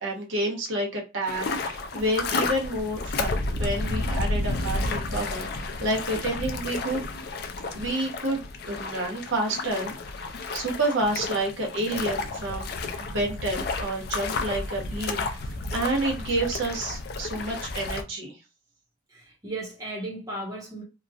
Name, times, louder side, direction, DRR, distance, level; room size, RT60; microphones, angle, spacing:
voice 1, 0.0-7.0 7.7-8.4 8.7-10.3 10.5-12.7 13.0-18.3, right 1 dB, 80° right, 1.0 m, -29 dB
sound 1, 1.3-18.0, left 3 dB, 55° left, 0.4 m, -31 dB
voice 2, 19.1-20.8, right 2 dB, 20° right, 1.0 m, -35 dB
3.0 x 2.3 x 2.4 m
head